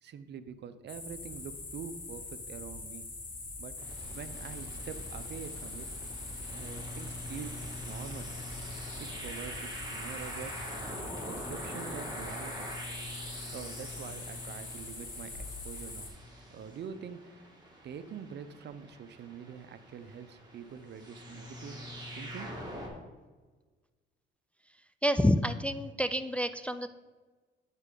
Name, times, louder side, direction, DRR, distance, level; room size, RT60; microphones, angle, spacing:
voice 1, 0.0-3.1 3.6-3.8 4.1-5.9 6.5-7.6 7.8-8.3 9.0-10.6 11.2-12.7 13.5-16.1 16.5-17.5 17.8-21.9 22.2-22.7, right 7 dB, 60° right, 12 dB, 0.6 m, -45 dB
sound 1, 0.9-16.1, left 3 dB, 45° left, 2.3 m, -43 dB
sound 2, 3.7-22.9, equal, 20° right, 2.2 m, -44 dB
voice 2, 25.0-26.9, left 1 dB, 5° left, 11 dB, 0.3 m, -28 dB
12.0 x 4.5 x 3.8 m, 1.3 s
cardioid pair, 90°, 20 cm